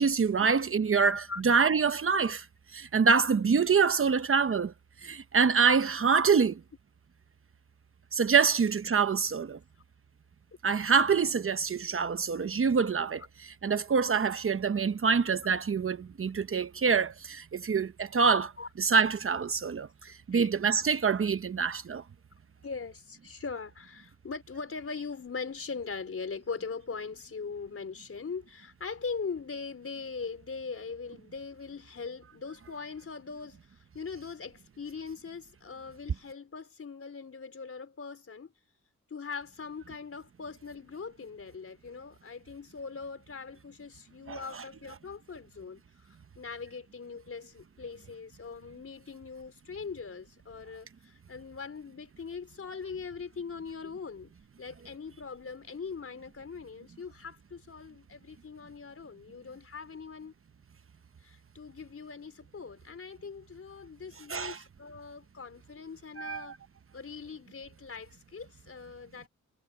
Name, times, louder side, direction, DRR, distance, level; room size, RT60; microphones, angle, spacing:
voice 1, 0.0-2.4 2.7-4.7 5.0-6.5 8.1-9.6 10.6-13.2 13.6-18.5 18.8-19.9 20.3-22.0 44.3-44.6 64.3-64.6 66.2-66.5, right 5 dB, 45° right, 1.0 m, -26 dB
voice 2, 22.6-38.5 39.1-54.3 54.6-60.3 61.2-66.6 66.9-69.3, left 5 dB, 50° left, 4.5 m, -41 dB
wide cardioid pair, 100°, 29 cm